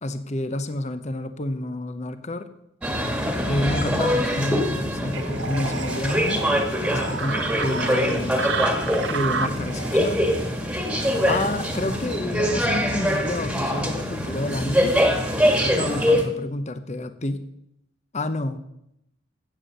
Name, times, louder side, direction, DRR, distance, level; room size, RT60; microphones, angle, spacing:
voice 1, 0.0-2.5 3.4-6.4 6.9-8.5 9.1-10.3 11.2-15.0 15.6-17.5 18.1-18.6, left 1 dB, 35° left, 10 dB, 0.8 m, -29 dB
sound 1, 2.8-16.2, equal, 5° right, 1.7 m, -24 dB
sound 2, 5.1-13.4, right 5 dB, 60° right, 1.1 m, -33 dB
15.5 x 8.2 x 6.7 m, 0.80 s
head